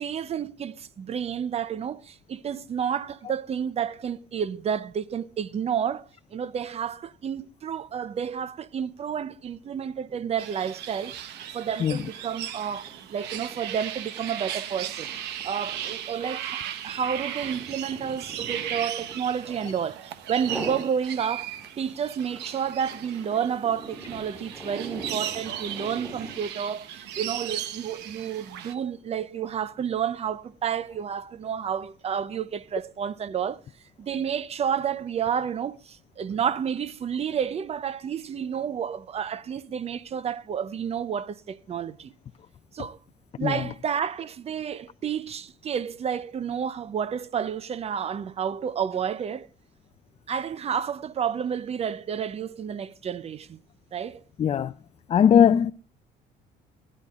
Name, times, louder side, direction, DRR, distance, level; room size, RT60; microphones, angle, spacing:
voice 1, 0.0-15.1 15.4-21.5 21.8-33.6 34.0-42.1 42.7-43.0 43.4-49.5 50.3-53.6 53.9-54.2, right 8 dB, 40° right, 0.6 m, -30 dB
sound 1, 10.4-28.7, right 10 dB, 85° right, 0.9 m, -37 dB
sound 2, 10.9-11.1 11.4-19.9 20.3-20.9 21.3-26.5, right 2 dB, 15° right, 7.4 m, -42 dB
voice 2, 54.4-54.7 55.1-55.7, left 8 dB, 35° left, 0.4 m, -18 dB
18.0 x 11.0 x 2.4 m
cardioid pair, 110°, 17 cm